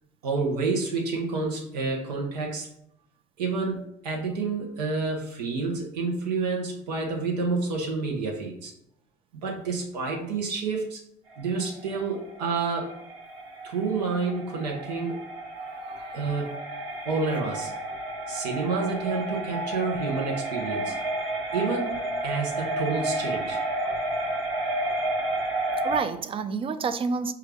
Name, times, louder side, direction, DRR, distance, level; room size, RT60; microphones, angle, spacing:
voice 1, 0.2-2.7 3.4-8.7 9.4-11.0 11.4-13.0 13.6-15.2 16.1-16.5 17.0-17.7 18.3-21.0 21.2-23.6, right 4 dB, 90° right, 0 dB, 0.6 m, -29 dB
sound 1, 11.3-26.0, right 1 dB, 70° right, 1.0 m, -31 dB
voice 2, 15.7-16.2 18.8-18.9 25.8-27.3, right 5 dB, 25° right, 12 dB, 0.3 m, -29 dB
4.6 x 2.3 x 3.3 m, 0.75 s
hypercardioid pair, 65°, 21 cm